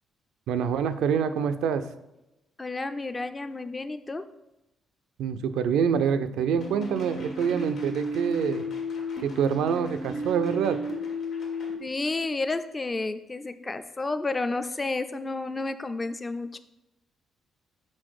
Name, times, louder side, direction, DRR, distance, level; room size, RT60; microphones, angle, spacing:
voice 1, 0.5-1.8 5.2-8.7 9.2-10.8, right 7 dB, 85° right, 10 dB, 0.4 m, -26 dB
voice 2, 2.6-4.2 11.8-16.6, left 3 dB, 25° left, 10 dB, 0.3 m, -31 dB
sound 1, 6.6-11.8, left 1 dB, 75° left, 1.5 m, -33 dB
5.8 x 4.2 x 4.7 m, 0.92 s
cardioid pair, 90°, 0 cm